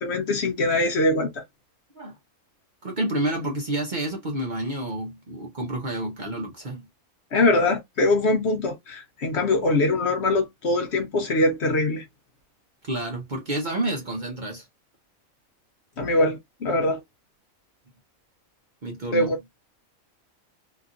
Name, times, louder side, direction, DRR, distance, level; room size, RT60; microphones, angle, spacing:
voice 1, 0.0-1.4 7.3-12.0 16.0-17.0 19.1-19.4, left 2 dB, 55° left, 0.9 m, -23 dB
voice 2, 2.8-6.9 12.8-14.7 18.8-19.3, right 1 dB, 40° right, 0.8 m, -29 dB
2.9 x 2.6 x 2.4 m
omnidirectional pair, 1.4 m